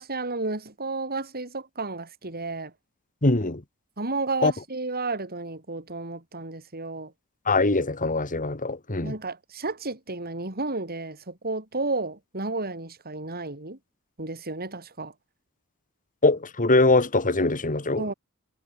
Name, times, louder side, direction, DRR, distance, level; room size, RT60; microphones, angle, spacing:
voice 1, 0.0-2.7 4.0-7.1 9.0-13.8 14.2-15.1 18.0-18.1, right 3 dB, 45° right, 5.7 m, -32 dB
voice 2, 3.2-3.6 4.4-4.5 7.5-9.1 16.2-18.1, left 2 dB, 35° left, 2.2 m, -22 dB
head